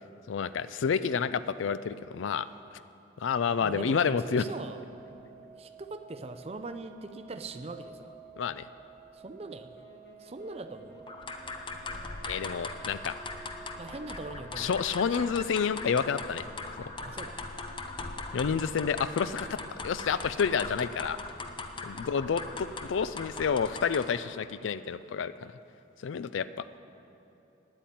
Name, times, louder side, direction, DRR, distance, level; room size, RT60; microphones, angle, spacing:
voice 1, 0.3-2.8 3.2-4.4 8.4-8.7 12.3-13.1 14.6-16.5 16.8-16.9 18.3-19.6 19.8-21.2 21.8-25.5 26.0-26.6, left 6 dB, 80° left, 15 dB, 0.4 m, -29 dB
voice 2, 3.6-4.8 5.6-8.2 9.1-9.8 10.2-11.1 13.8-14.8 17.0-17.4 22.0-22.1, right 3 dB, 30° right, 8 dB, 0.5 m, -41 dB
sound 1, 4.1-14.5, right 6 dB, 5° left, 1.1 m, -52 dB
sound 2, 9.7-20.1, left 1 dB, 60° left, 1.3 m, -56 dB
sound 3, 11.1-24.3, left 3 dB, 25° left, 0.6 m, -40 dB
9.8 x 8.5 x 9.2 m, 2.8 s
head